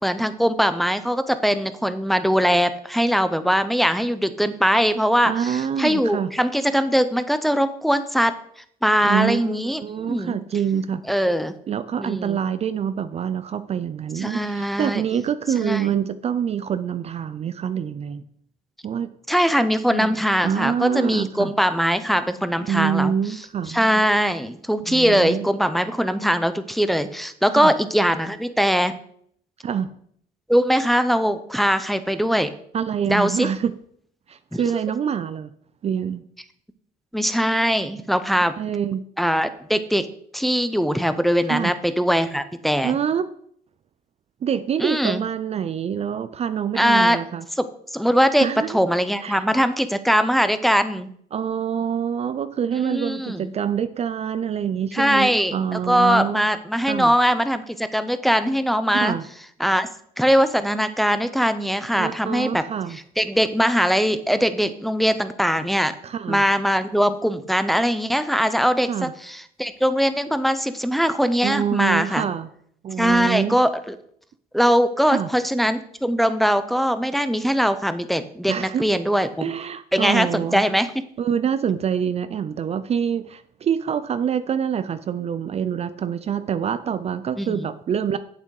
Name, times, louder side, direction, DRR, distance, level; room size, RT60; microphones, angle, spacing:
voice 1, 0.0-8.3 8.8-9.8 10.1-10.4 11.1-11.5 12.0-12.4 14.2-15.0 15.6-15.9 19.3-23.1 23.7-28.9 30.5-32.5 33.1-33.5 34.5-34.6 37.1-38.5 39.2-40.1 40.3-43.0 44.8-45.2 46.8-47.2 47.5-47.7 47.9-51.1 52.8-53.5 54.9-59.1 59.6-59.9 60.2-62.6 62.9-65.9 66.3-72.2 73.0-74.0 74.5-79.5 79.9-80.9 87.4-87.7, equal, ahead, 11 dB, 0.6 m, -21 dB
voice 2, 5.3-6.3 9.1-11.0 11.7-18.2 18.8-19.1 19.9-20.1 20.4-21.5 22.7-24.0 24.9-25.5 27.5-27.7 29.6-29.9 32.7-33.7 34.3-35.5 35.8-36.2 38.6-39.0 41.5-41.7 42.8-43.3 44.4-47.4 48.4-48.8 49.2-49.5 51.3-56.4 56.9-57.1 58.9-59.2 62.0-63.0 66.0-66.4 68.9-69.1 71.4-72.5 72.8-73.6 75.1-75.3 78.5-78.8 79.4-80.6 81.2-88.2, right 8 dB, 40° right, 12 dB, 0.5 m, -26 dB
8.2 x 7.3 x 4.8 m, 0.66 s
cardioid pair, 110°, 17 cm